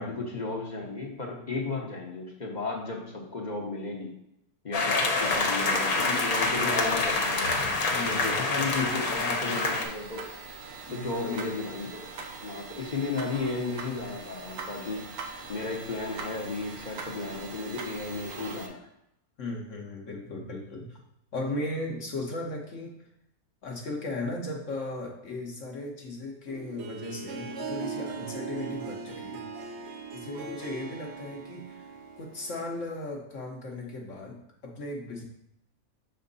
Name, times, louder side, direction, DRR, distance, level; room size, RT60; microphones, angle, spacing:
voice 1, 0.0-4.1 4.6-7.6 8.0-10.3 10.9-12.1 12.4-15.0 15.5-18.9, left 3 dB, 35° left, -1 dB, 0.9 m, -34 dB
sound 1, 4.7-9.8, left 3 dB, 80° left, 1.4 m, -26 dB
sound 2, 5.2-18.7, right 4 dB, 90° right, 1.3 m, -42 dB
voice 2, 7.9-8.6 10.8-11.7 19.4-21.0 21.3-23.1 23.6-29.5 29.8-35.2, left 2 dB, 60° left, -1 dB, 1.2 m, -37 dB
Harp, 26.5-33.0, right 5 dB, 60° right, 0.9 m, -39 dB
6.4 x 4.4 x 4.0 m, 0.82 s
omnidirectional pair, 1.5 m